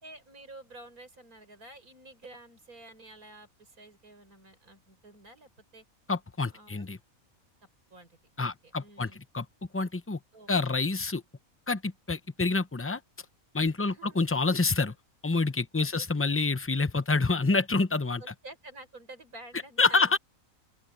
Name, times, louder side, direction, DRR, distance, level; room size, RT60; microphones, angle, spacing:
voice 1, 0.0-5.8 6.5-6.8 7.9-9.2 10.3-10.5 13.8-14.2 15.7-16.1 18.2-20.2, right 2 dB, 90° right, 6.0 m, -50 dB
voice 2, 6.1-7.0 8.4-9.5 9.7-10.2 10.5-11.2 11.7-13.0 13.5-14.9 15.2-18.3 19.8-20.2, left 3 dB, 15° left, 0.4 m, -27 dB
open air
omnidirectional pair, 1.5 m